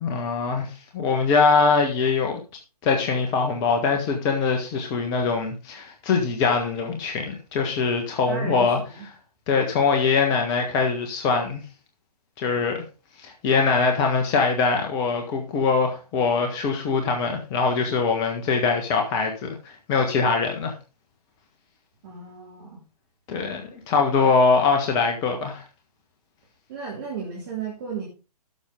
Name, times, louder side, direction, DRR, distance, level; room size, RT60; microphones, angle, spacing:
voice 1, 0.0-0.7 0.9-2.4 2.8-8.8 9.5-11.6 12.4-12.8 13.2-19.5 19.9-20.7 23.3-25.6, left 4 dB, 20° left, 1.4 m, -22 dB
voice 2, 8.3-9.1 22.0-22.8 26.7-28.1, right 6 dB, 35° right, 2.9 m, -34 dB
12.0 x 7.1 x 3.7 m
figure-of-eight pair, 130°, 20 cm